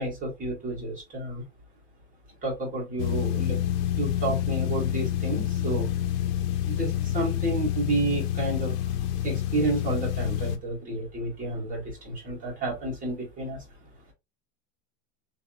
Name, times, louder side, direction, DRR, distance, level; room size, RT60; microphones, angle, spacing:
voice 1, 0.0-1.5 2.4-3.6 4.0-5.9 6.7-8.8 9.2-13.6, right 2 dB, 20° right, 1.9 m, -30 dB
sound 1, 3.0-10.6, left 11 dB, 55° left, 0.6 m, -28 dB
3.3 x 3.0 x 2.6 m
supercardioid pair, 145°, 36 cm